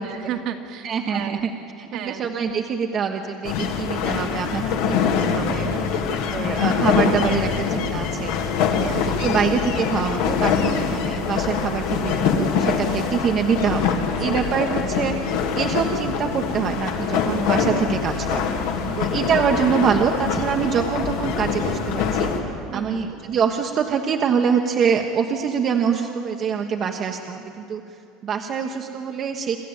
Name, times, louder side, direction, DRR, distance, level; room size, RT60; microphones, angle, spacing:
voice 1, 0.0-1.4 1.9-2.2 5.6-6.1 8.8-9.1 14.2-14.4 18.9-19.1 22.7-23.1, right 8 dB, 60° right, 3 dB, 2.1 m, -34 dB
voice 2, 0.8-1.5 1.8-5.7 6.1-8.4 8.8-18.5 19.0-22.3 22.7-27.8 28.2-29.6, right 6 dB, 40° right, 2 dB, 1.4 m, -25 dB
sound 1, 3.4-22.4, left 6 dB, 80° left, 2.5 m, -24 dB
28.0 x 12.5 x 9.0 m, 2.6 s
supercardioid pair, 110°, 0 cm